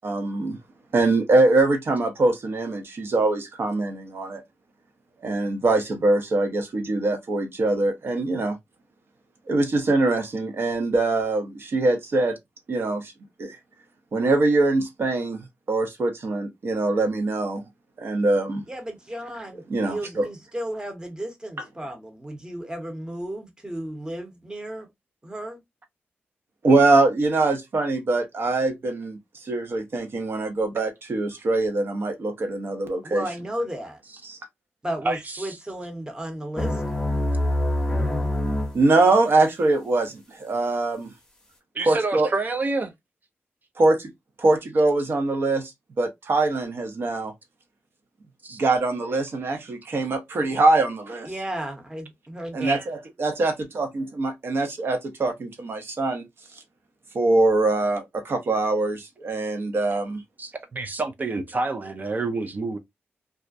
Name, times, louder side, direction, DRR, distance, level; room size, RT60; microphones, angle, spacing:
voice 1, 0.0-0.6 0.9-4.4 5.2-8.6 9.5-12.4 12.7-13.1 13.4-13.6 14.1-17.6 18.0-18.6 19.7-20.3 26.6-33.3 34.2-34.4 38.7-41.1 41.9-42.3 43.8-43.9 44.4-45.7 46.0-47.3 48.6-51.3 52.5-56.2 57.1-60.2, right 2 dB, 60° right, 0.7 m, -23 dB
voice 2, 18.7-24.9 25.2-25.6 33.0-34.0 34.8-36.8 51.3-52.8, right 1 dB, 15° right, 0.8 m, -34 dB
voice 3, 35.0-35.6 41.8-42.9 48.4-48.6 60.4-62.8, right 3 dB, 40° right, 0.4 m, -28 dB
sound 1, 36.5-38.8, left 1 dB, 15° left, 0.7 m, -25 dB
2.3 x 2.1 x 2.5 m
cardioid pair, 75°, 4 cm